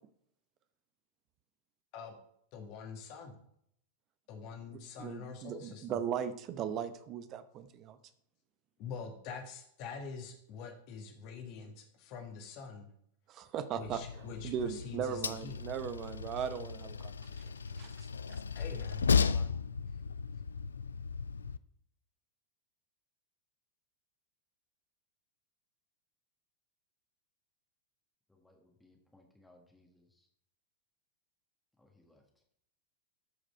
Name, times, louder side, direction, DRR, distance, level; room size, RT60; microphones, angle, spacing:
voice 1, 2.5-3.3 4.3-5.8 8.8-12.9 13.7-15.6 18.5-19.5, left 5 dB, 45° left, 4 dB, 1.8 m, -45 dB
voice 2, 5.0-8.0 13.3-18.4, right 8 dB, 35° right, 12 dB, 0.9 m, -38 dB
Train, 13.8-21.6, left 6 dB, 70° left, 0.3 m, -35 dB
voice 3, 28.3-30.3 31.8-32.4, left 1 dB, 5° left, 0 dB, 1.6 m, -65 dB
13.5 x 5.0 x 4.4 m, 0.70 s
figure-of-eight pair, 90°, 0 cm